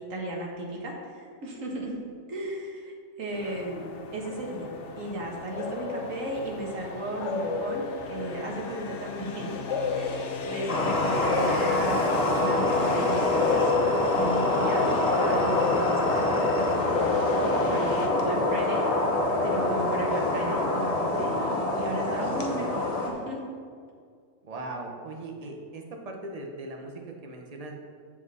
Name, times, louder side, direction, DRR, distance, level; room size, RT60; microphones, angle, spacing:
voice 1, 0.0-2.0 2.3-3.9 4.1-4.7 5.0-9.6 9.9-13.7 14.2-14.9 15.2-17.2 17.7-18.9 19.4-23.4, right 1 dB, 80° right, -2 dB, 1.9 m, -35 dB
sound 1, 3.3-18.1, left 4 dB, 65° left, 1.1 m, -34 dB
sound 2, 10.7-23.1, left 2 dB, 30° left, 1.0 m, -25 dB
voice 2, 24.4-27.8, right 2 dB, 30° right, 2 dB, 1.0 m, -39 dB
7.8 x 7.3 x 4.1 m, 2.1 s
omnidirectional pair, 1.3 m